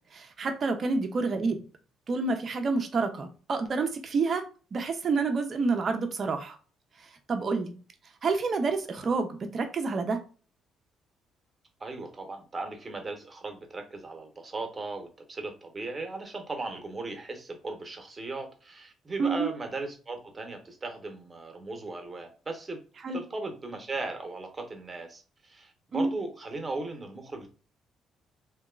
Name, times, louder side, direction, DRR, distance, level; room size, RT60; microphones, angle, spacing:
voice 1, 0.1-1.6 2.1-4.4 4.7-6.6 7.3-7.8 8.2-10.2 19.2-19.5 23.0-23.2 25.9-26.1, right 4 dB, 50° right, 5 dB, 0.6 m, -28 dB
voice 2, 11.8-22.8 23.1-27.5, right 3 dB, 30° right, 4 dB, 1.0 m, -37 dB
2.8 x 2.3 x 2.2 m, 0.36 s
hypercardioid pair, 55°, 0 cm